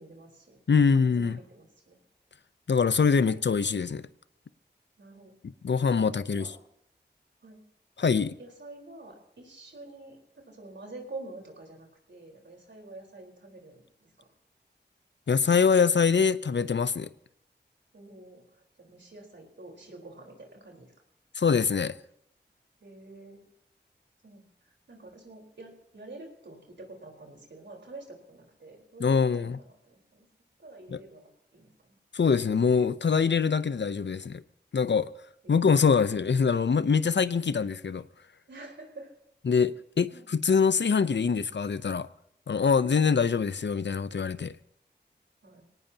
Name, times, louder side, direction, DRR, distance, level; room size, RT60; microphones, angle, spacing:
voice 1, 0.0-2.0 3.1-3.4 5.0-5.3 5.8-6.6 7.4-7.6 8.1-14.3 17.9-18.4 18.8-20.9 22.8-23.4 24.2-24.5 24.9-30.3 30.6-31.7 35.4-35.7 38.5-39.1 40.1-40.3 45.4-45.7, right 2 dB, 85° right, 4.2 m, -48 dB
voice 2, 0.7-1.4 2.7-4.1 5.4-6.5 8.0-8.3 15.3-17.1 21.4-21.9 29.0-29.6 30.9-31.0 32.1-34.4 34.7-35.1 35.5-38.1 39.4-42.1 42.5-44.5, left 5 dB, 80° left, 0.7 m, -24 dB
24.5 x 18.0 x 2.9 m
wide cardioid pair, 45°, 18 cm